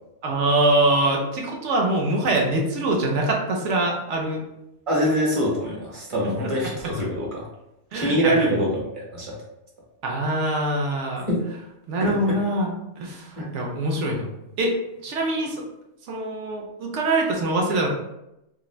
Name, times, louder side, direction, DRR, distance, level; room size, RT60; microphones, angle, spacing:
voice 1, 0.2-4.4 6.2-6.3 7.9-8.4 10.0-11.3 11.9-14.8 15.0-15.6 16.1-17.9, right 2 dB, 65° right, 0 dB, 0.8 m, -24 dB
voice 2, 4.9-7.5 7.9-9.3 11.3-11.5 12.0-12.4 13.4-13.5, equal, 30° right, -4 dB, 0.7 m, -24 dB
2.5 x 2.5 x 3.0 m, 0.88 s
omnidirectional pair, 1.5 m